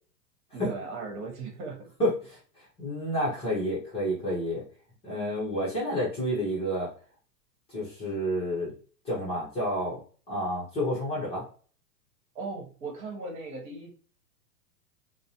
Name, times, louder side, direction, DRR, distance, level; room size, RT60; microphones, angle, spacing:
voice 1, 0.5-1.9 12.3-13.9, right 3 dB, 55° right, 1 dB, 1.1 m, -37 dB
voice 2, 2.0-4.6 5.0-6.9 7.7-8.7 9.0-10.0 10.3-11.4, equal, 10° left, -8 dB, 0.6 m, -30 dB
2.4 x 2.0 x 2.8 m, 0.41 s
hypercardioid pair, 130°, 49 cm